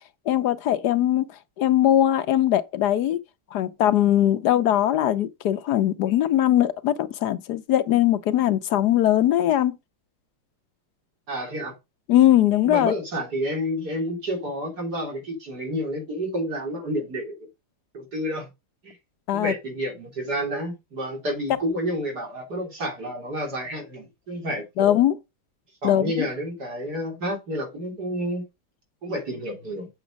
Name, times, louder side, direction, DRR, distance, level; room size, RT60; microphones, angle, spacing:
voice 1, 0.3-1.3 1.6-3.2 3.5-9.8 12.1-12.9 19.3-19.5 24.8-25.2 25.8-26.3, left 12 dB, 70° left, 1.2 m, -20 dB
voice 2, 11.3-11.7 12.7-17.5 17.9-18.5 18.8-19.0 19.3-25.0 25.8-28.4 29.0-29.9, equal, 60° right, 4.0 m, -30 dB
8.3 x 6.0 x 5.0 m
omnidirectional pair, 2.0 m